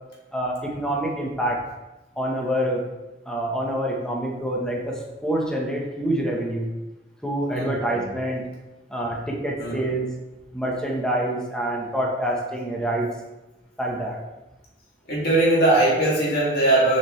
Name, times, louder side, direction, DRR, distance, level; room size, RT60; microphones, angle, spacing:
voice 1, 0.3-1.6 2.1-2.8 3.3-6.7 7.2-8.5 8.9-10.1 10.5-13.1 13.8-14.2, right 1 dB, 5° left, -2 dB, 1.1 m, -26 dB
voice 2, 7.5-8.1 9.6-9.8 15.1-17.0, right 2 dB, 60° left, -6 dB, 2.3 m, -20 dB
7.2 x 5.2 x 3.2 m, 1.1 s
head